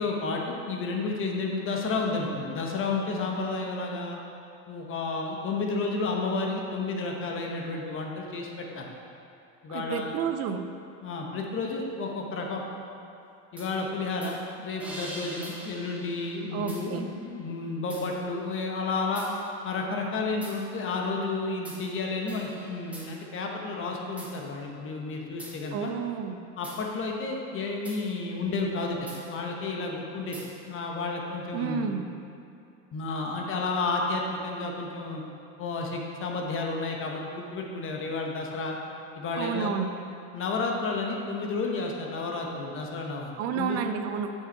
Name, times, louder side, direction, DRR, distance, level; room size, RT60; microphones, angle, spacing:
voice 1, 0.0-4.2 4.7-8.9 9.6-10.2 11.0-12.6 13.5-19.3 19.6-25.9 26.6-30.4 30.6-31.9 32.9-35.2 35.6-38.8 39.2-39.7 40.3-43.9, left 3 dB, 35° left, 1 dB, 1.0 m, -31 dB
voice 2, 9.7-10.7 16.5-17.1 25.7-26.4 31.5-32.1 39.4-39.9 43.4-44.3, right 7 dB, 45° right, 7 dB, 0.6 m, -30 dB
sound 1, 13.6-13.7 14.2-14.4 14.8-17.3 17.9-18.1 19.2-19.3 20.4-20.6 21.7-21.8 22.3-24.4 25.4-25.6 26.6-26.8 27.9-28.0 29.1-29.2 30.3-30.5, right 1 dB, 5° right, 1.4 m, -44 dB
6.8 x 5.7 x 4.5 m, 2.6 s
supercardioid pair, 120°, 36 cm